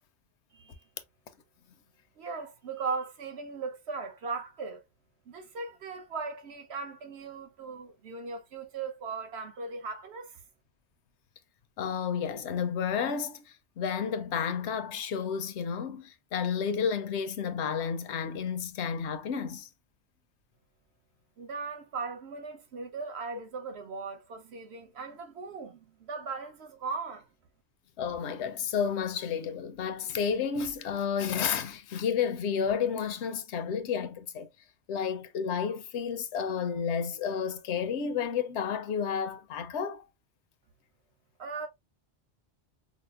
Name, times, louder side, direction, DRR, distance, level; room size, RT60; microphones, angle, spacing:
voice 1, 2.2-4.8 5.3-10.4 21.4-27.3 41.4-41.7, right 4 dB, 70° right, 1.0 m, -38 dB
voice 2, 11.8-13.4 13.8-19.7 28.0-34.5 34.9-40.1, left 7 dB, 80° left, 0.9 m, -31 dB
4.9 x 2.0 x 2.3 m
omnidirectional pair, 1.2 m